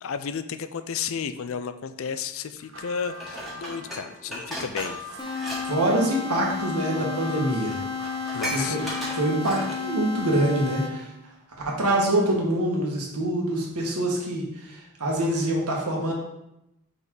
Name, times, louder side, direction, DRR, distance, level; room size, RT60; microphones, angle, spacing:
voice 1, 0.0-5.0 8.3-8.8, left 6 dB, 60° left, 11 dB, 0.4 m, -32 dB
sound 1, 2.6-9.2, left 2 dB, 65° right, 1.0 m, -43 dB
Dishes pots and pans, 3.2-5.6 5.9-6.1 7.0-7.1 7.4-7.5 7.7-9.9 10.4-10.5, equal, ahead, 1.4 m, -35 dB
sound 2, 5.2-11.2, left 5 dB, 20° left, 0.8 m, -32 dB
voice 2, 5.7-7.8 8.5-8.8 9.1-11.1 11.6-16.1, right 1 dB, 90° right, -1 dB, 1.6 m, -25 dB
5.3 x 4.0 x 4.7 m, 0.85 s
head